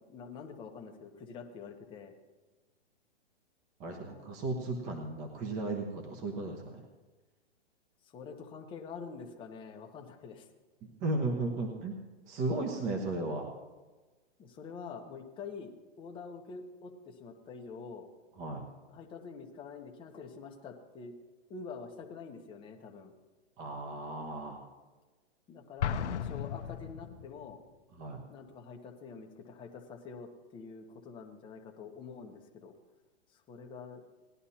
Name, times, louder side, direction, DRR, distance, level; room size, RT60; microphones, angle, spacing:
voice 1, 0.1-2.1 3.9-4.4 8.1-10.5 12.7-12.8 14.4-18.1 18.9-21.1 21.5-23.1 25.5-27.6 28.3-32.7 33.3-34.0, left 5 dB, 15° left, 2 dB, 1.0 m, -46 dB
voice 2, 3.8-6.8 11.0-11.9 12.3-13.5 18.4-18.6 23.6-24.7 28.0-28.2, right 2 dB, 25° right, 2 dB, 1.2 m, -35 dB
Explosion, 25.8-27.6, left 8 dB, 85° left, 0.9 m, -35 dB
19.5 x 11.0 x 2.8 m, 1.3 s
hypercardioid pair, 155°, 33 cm